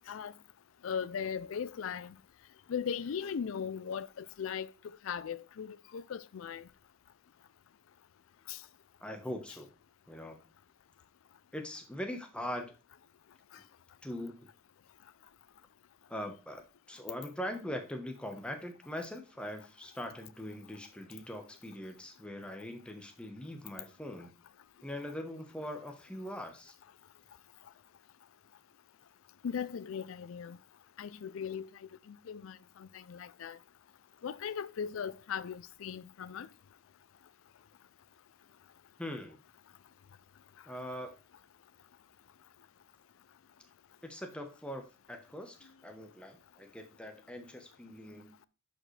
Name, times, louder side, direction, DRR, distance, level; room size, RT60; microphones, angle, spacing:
voice 1, 0.8-2.1 2.7-4.7 5.0-6.6 8.5-8.6 29.4-30.6 31.0-31.7 32.3-33.6 34.2-36.5, left 7 dB, 90° left, 0.4 m, -38 dB
voice 2, 9.0-9.7 10.1-10.4 11.5-12.7 14.0-14.3 16.1-24.3 24.8-26.7 39.0-39.4 40.7-41.1 44.0-48.3, left 1 dB, 5° left, 1.0 m, -42 dB
10.5 x 5.1 x 3.3 m
head